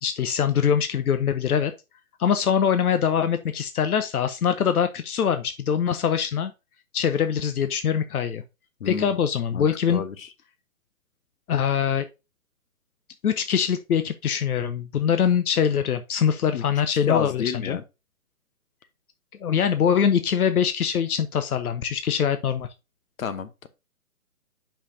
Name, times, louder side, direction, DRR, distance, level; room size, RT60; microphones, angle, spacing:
voice 1, 0.0-1.7 2.2-6.5 6.9-8.4 8.8-10.0 11.5-12.1 13.2-17.8 19.4-22.7, left 8 dB, 85° left, 0.8 m, -23 dB
voice 2, 8.8-9.2 9.5-10.3 16.5-16.6 16.9-17.8 23.2-23.7, left 7 dB, 65° left, 1.0 m, -30 dB
6.6 x 5.7 x 2.7 m
hypercardioid pair, 170°, 43 cm